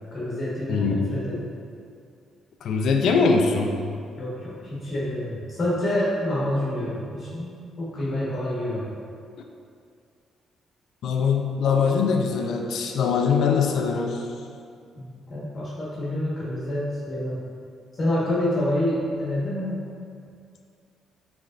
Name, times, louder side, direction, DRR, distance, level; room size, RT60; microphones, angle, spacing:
voice 1, 0.1-1.5 4.2-8.8 15.0-17.4 17.9-19.8, left 1 dB, 40° left, -7 dB, 1.4 m, -27 dB
voice 2, 0.7-1.1 2.6-3.9 11.0-14.3, left 5 dB, 70° left, 3 dB, 0.5 m, -22 dB
6.1 x 3.4 x 2.6 m, 2.4 s
cardioid pair, 90°, 0 cm